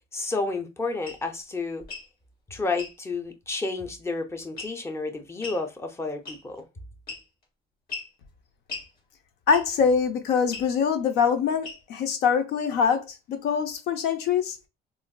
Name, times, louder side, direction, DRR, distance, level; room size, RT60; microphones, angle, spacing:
voice 1, 0.1-1.8 2.5-6.7, left 3 dB, 15° left, 0.7 m, -31 dB
sound 1, 1.0-1.2 1.8-2.1 2.8-3.0 4.6-4.9 5.4-5.6 6.3-6.6 7.1-7.4 7.9-8.1 8.7-8.9 9.5-9.8 10.5-10.7 11.6-12.0, left 4 dB, 60° left, 1.8 m, -38 dB
voice 2, 9.5-14.6, left 6 dB, 80° left, 0.6 m, -24 dB
3.9 x 2.4 x 2.2 m
cardioid pair, 110°, 17 cm